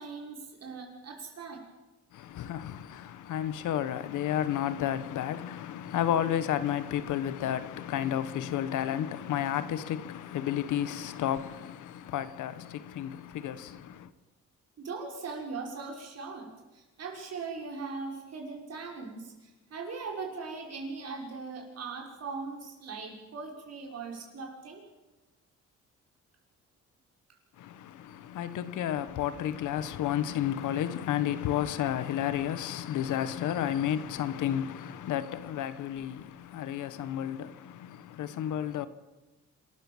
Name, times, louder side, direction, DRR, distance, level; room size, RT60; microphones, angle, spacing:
voice 1, 0.0-1.6 14.8-24.8 35.9-36.0, right 4 dB, 55° right, 6.2 m, -40 dB
voice 2, 2.1-14.1 27.6-38.9, left 10 dB, 80° left, 1.3 m, -32 dB
27.0 x 13.5 x 7.3 m
cardioid pair, 90°, 30 cm